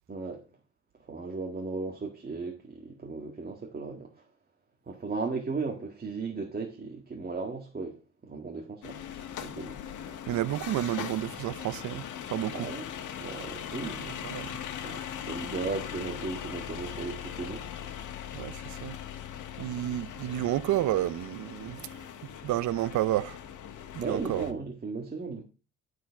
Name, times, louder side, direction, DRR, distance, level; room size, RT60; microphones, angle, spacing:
voice 1, 0.1-0.5 1.0-4.3 4.9-9.0 9.4-9.8 12.5-12.9 13.2-14.1 14.8-18.0 24.0-25.4, right 4 dB, 30° right, 1.7 m, -36 dB
sound 1, 8.8-24.5, left 9 dB, 80° left, 1.5 m, -40 dB
voice 2, 10.3-12.7 13.8-14.6 18.3-19.0 19.6-22.0 22.4-23.4 23.9-24.5, right 14 dB, 70° right, 0.6 m, -31 dB
12.5 x 4.9 x 5.7 m
cardioid pair, 90°, 30 cm